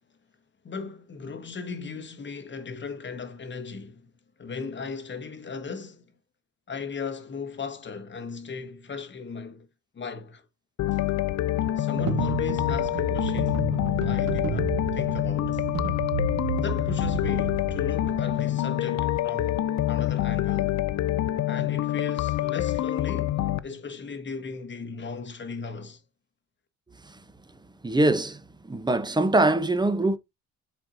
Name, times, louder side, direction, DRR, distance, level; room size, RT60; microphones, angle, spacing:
voice 1, 0.6-4.0 4.4-6.0 6.7-9.7 9.9-10.4 11.8-15.6 16.5-20.8 21.5-23.4 23.6-26.0, left 5 dB, 40° left, 1.6 m, -37 dB
sound 1, 10.8-23.6, left 14 dB, 65° left, 0.6 m, -26 dB
sound 2, 11.9-18.7, right 9 dB, 80° right, 1.3 m, -32 dB
voice 2, 27.8-30.2, right 2 dB, 15° right, 0.9 m, -23 dB
8.0 x 4.4 x 2.7 m
cardioid pair, 90°, 30 cm